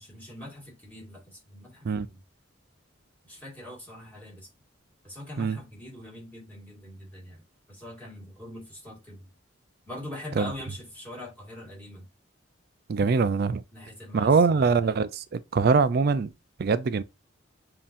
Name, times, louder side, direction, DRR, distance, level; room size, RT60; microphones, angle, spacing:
voice 1, 0.0-2.2 3.2-4.5 5.0-9.3 9.9-12.1 13.7-15.0, left 1 dB, 10° left, 2.1 m, -43 dB
voice 2, 12.9-13.6 14.1-16.3 16.6-17.0, right 4 dB, 50° right, 0.4 m, -23 dB
7.3 x 2.8 x 2.5 m
head